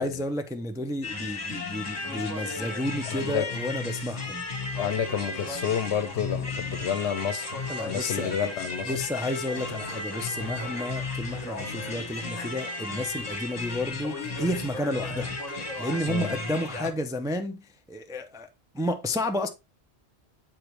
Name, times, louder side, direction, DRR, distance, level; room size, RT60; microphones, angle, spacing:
voice 1, 0.0-4.5 7.7-8.3 8.8-18.5 18.7-19.5, left 1 dB, 5° right, 0.3 m, -31 dB
sound 1, 1.0-16.9, left 3 dB, 35° left, 1.2 m, -34 dB
voice 2, 3.1-3.5 4.7-8.9 16.1-16.4, left 8 dB, 75° left, 0.9 m, -30 dB
7.5 x 5.0 x 3.0 m
omnidirectional pair, 1.2 m